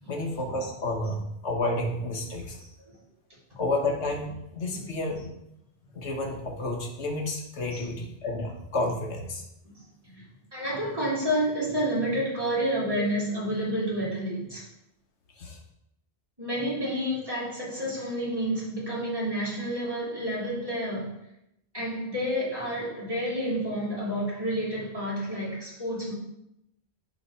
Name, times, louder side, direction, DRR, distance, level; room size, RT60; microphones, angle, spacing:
voice 1, 0.1-2.6 3.6-5.3 5.9-9.4 12.9-13.0 15.4-15.6, left 2 dB, 85° left, 1 dB, 1.5 m, -30 dB
voice 2, 10.5-14.6 16.4-21.1 21.7-26.1, equal, 20° right, -8 dB, 3.2 m, -29 dB
10.0 x 3.6 x 4.3 m, 0.83 s
omnidirectional pair, 1.1 m